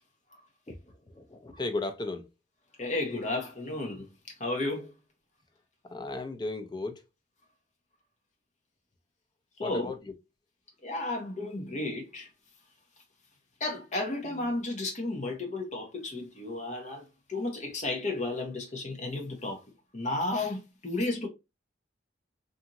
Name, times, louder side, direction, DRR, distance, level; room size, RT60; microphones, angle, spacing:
voice 1, 0.7-2.3 5.8-7.0 9.6-10.1, left 2 dB, 20° left, 0.4 m, -36 dB
voice 2, 2.8-4.1 4.4-4.9 9.6-9.9 10.8-12.3 13.6-19.6 19.9-21.3, left 2 dB, 35° left, 0.8 m, -33 dB
2.8 x 2.6 x 2.5 m
head